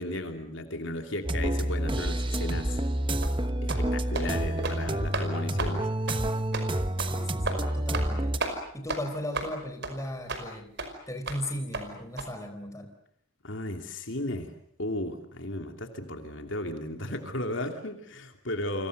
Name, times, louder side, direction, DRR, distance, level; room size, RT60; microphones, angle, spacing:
voice 1, 0.0-2.8 3.6-5.9 13.4-14.5 14.8-18.9, left 1 dB, 60° left, 5 dB, 2.9 m, -35 dB
sound 1, 1.2-8.4, right 1 dB, 25° right, 1.1 m, -28 dB
sound 2, 3.2-3.4 3.7-3.9 4.1-4.3 4.6-4.8 5.1-5.3 5.6-5.7 6.1-6.2 6.5-6.7 7.0-7.1 7.4-7.6 7.9-8.1 8.4-8.5 8.9-9.0 9.3-9.5 9.8-9.9 10.3-10.4 10.8-10.9 11.3-11.4 11.7-11.8 12.2-12.3, right 3 dB, 55° right, 5.3 m, -32 dB
voice 2, 7.1-10.7 11.1-12.9, left 1 dB, 15° left, 5 dB, 4.2 m, -37 dB
29.5 x 26.0 x 6.7 m, 0.68 s
head